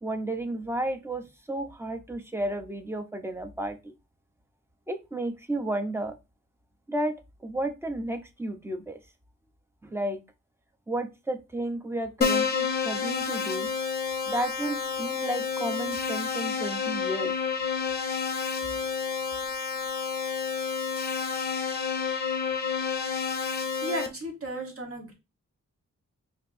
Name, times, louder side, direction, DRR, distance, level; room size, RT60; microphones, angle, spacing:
voice 1, 0.0-3.9 4.9-6.1 6.9-7.2 7.4-9.0 9.8-10.2 10.9-13.7 14.3-17.3, right 1 dB, 10° right, 6 dB, 0.5 m, -32 dB
Keyboard (musical), 12.2-24.1, left 6 dB, 30° left, 0.6 m, -29 dB
voice 2, 23.8-25.1, right 1 dB, 45° right, 2 dB, 1.2 m, -34 dB
4.2 x 2.7 x 2.5 m, 0.25 s
wide cardioid pair, 135°, 30 cm